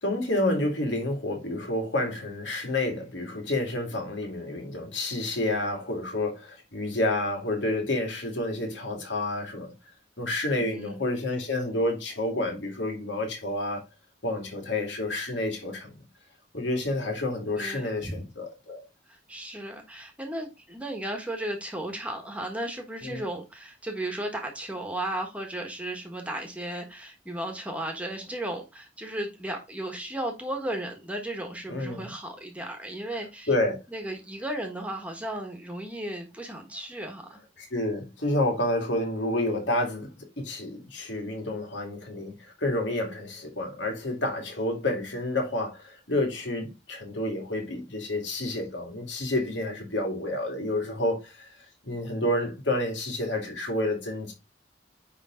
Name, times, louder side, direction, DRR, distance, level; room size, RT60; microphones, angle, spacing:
voice 1, 0.0-9.7 10.2-13.9 14.2-15.9 16.5-18.9 23.0-23.2 31.7-32.1 33.5-33.8 37.6-51.5 51.8-54.3, left 1 dB, 75° left, 2.4 m, -29 dB
voice 2, 10.6-11.1 17.6-18.2 19.1-33.5 33.9-37.3, right 1 dB, 5° right, 1.4 m, -35 dB
9.9 x 3.4 x 3.8 m
head